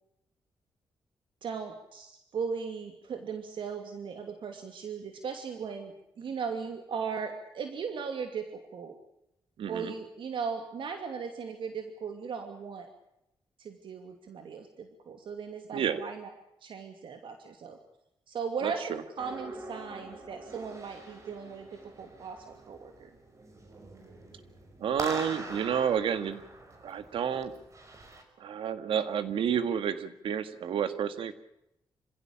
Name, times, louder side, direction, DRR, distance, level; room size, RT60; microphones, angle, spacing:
voice 1, 1.4-9.0 9.7-12.9 13.6-16.3 16.6-17.8 18.3-23.1, right 6 dB, 70° right, 6 dB, 2.7 m, -38 dB
voice 2, 9.6-9.9 15.7-16.0 18.6-19.0 24.8-26.4 26.8-27.5 28.4-31.3, right 8 dB, 90° right, 11 dB, 1.8 m, -30 dB
sound 1, 19.2-28.2, right 2 dB, 35° right, 5.5 m, -44 dB
26.5 x 16.5 x 8.7 m, 0.85 s
cardioid pair, 110°, 9 cm